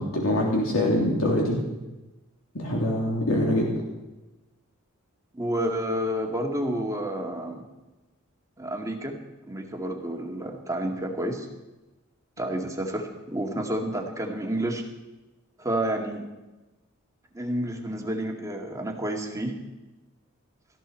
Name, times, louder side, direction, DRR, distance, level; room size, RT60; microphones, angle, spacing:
voice 1, 0.0-1.6 2.5-3.7, left 1 dB, 75° left, -2 dB, 3.2 m, -24 dB
voice 2, 5.3-7.6 8.6-9.1 9.5-11.5 12.4-14.8 15.6-16.2 17.3-19.5, right 1 dB, 15° right, 2 dB, 2.0 m, -30 dB
19.0 x 14.0 x 4.5 m, 1.1 s
head